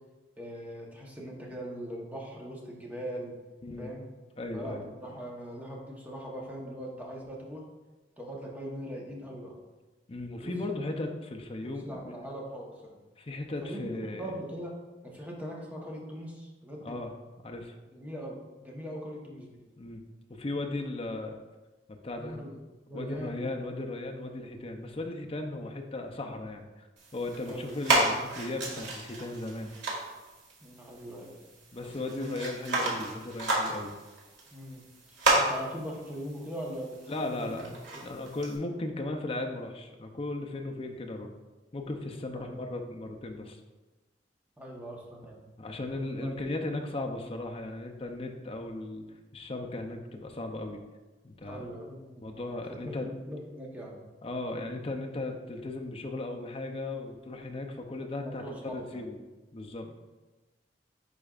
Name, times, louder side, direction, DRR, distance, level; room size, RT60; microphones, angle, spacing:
voice 1, 0.4-3.4 3.8-4.1 4.5-7.6 8.2-9.5 10.4-10.5 11.6-12.9 13.6-14.7 15.0-17.0 17.9-19.6 22.2-22.6 22.9-23.4 27.5-27.7 30.6-31.3 31.8-32.5 34.5-34.9 35.4-38.0 42.3-42.6 44.6-45.4 45.9-46.4 51.4-54.0 58.2-59.1 59.8-59.9, equal, 10° right, -2 dB, 1.1 m, -41 dB
voice 2, 4.4-5.2 10.1-12.2 13.2-14.3 16.8-17.1 17.4-17.7 19.8-20.0 20.3-21.4 21.9-22.4 22.9-26.9 27.1-29.7 31.7-33.9 37.1-41.3 41.7-43.6 45.6-49.0 49.3-50.8 51.2-51.7 52.2-53.1 54.2-59.2 59.5-59.9, left 2 dB, 30° left, 3 dB, 0.6 m, -36 dB
sound 1, 27.0-38.6, right 2 dB, 85° right, 1.7 m, -32 dB
10.0 x 4.4 x 2.4 m, 1.2 s
head